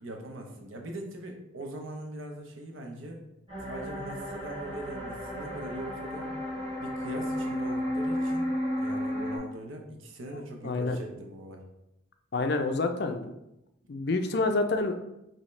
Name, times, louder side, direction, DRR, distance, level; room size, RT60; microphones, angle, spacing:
voice 1, 0.0-3.2 3.7-6.3 6.8-8.5 8.8-11.6, right 1 dB, 80° right, 2 dB, 0.8 m, -41 dB
sound 1, 3.5-9.4, equal, 25° right, 1.6 m, -33 dB
voice 2, 10.6-11.0 12.3-13.3 13.9-15.0, left 3 dB, 55° left, 7 dB, 0.4 m, -28 dB
5.5 x 2.8 x 3.2 m, 0.88 s
head